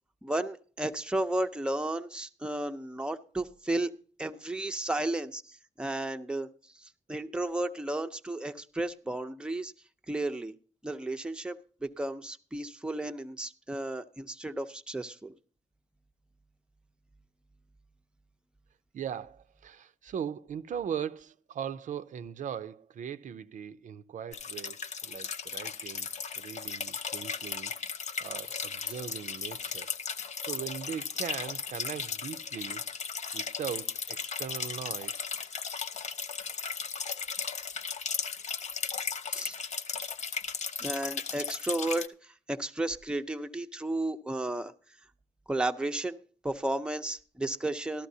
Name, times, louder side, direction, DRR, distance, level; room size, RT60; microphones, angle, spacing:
voice 1, 0.2-3.9 4.2-6.5 6.7-9.7 10.1-10.5 10.8-15.4 39.3-39.6 40.8-44.7 45.5-46.2 46.4-48.1, right 1 dB, 5° right, 0.6 m, -33 dB
voice 2, 18.9-26.1 26.4-27.7 28.2-30.2 30.5-32.8 33.3-35.3, right 8 dB, 75° right, 0.5 m, -39 dB
sound 1, 24.3-42.1, left 6 dB, 60° left, 0.6 m, -36 dB
13.5 x 13.0 x 2.7 m
wide cardioid pair, 105°, 13 cm